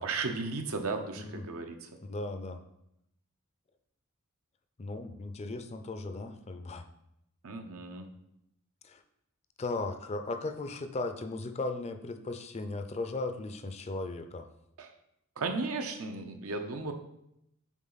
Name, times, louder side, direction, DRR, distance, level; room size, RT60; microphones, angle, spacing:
voice 1, 0.0-1.9 7.4-8.1 14.8-14.9 15.4-16.9, right 3 dB, 80° right, 5 dB, 0.7 m, -35 dB
voice 2, 2.0-2.6 4.8-6.8 8.8-9.0 9.6-14.5, left 2 dB, 30° left, 8 dB, 0.4 m, -37 dB
7.4 x 3.8 x 4.0 m, 0.81 s
head